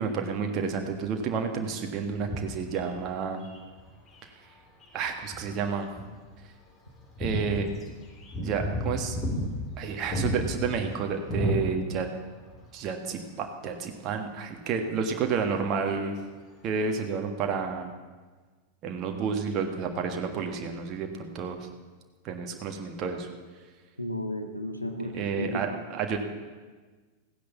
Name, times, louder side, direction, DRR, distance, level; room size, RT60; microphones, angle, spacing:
voice 1, 0.0-3.5 4.9-5.9 7.2-7.7 8.4-9.2 9.8-12.1 12.7-16.1 16.6-17.9 18.8-21.6 22.2-23.3 25.1-26.2, right 6 dB, 35° right, 4 dB, 1.7 m, -30 dB
sound 1, 2.1-4.2 4.8-5.6 6.0-6.1 6.3-6.4 6.9-12.2 12.5-12.6 14.2-14.3, left 1 dB, 25° left, 3.3 m, -32 dB
voice 2, 24.0-25.7, equal, 85° left, 5 dB, 1.3 m, -33 dB
16.0 x 10.5 x 7.2 m, 1.4 s
figure-of-eight pair, 90°, 0 cm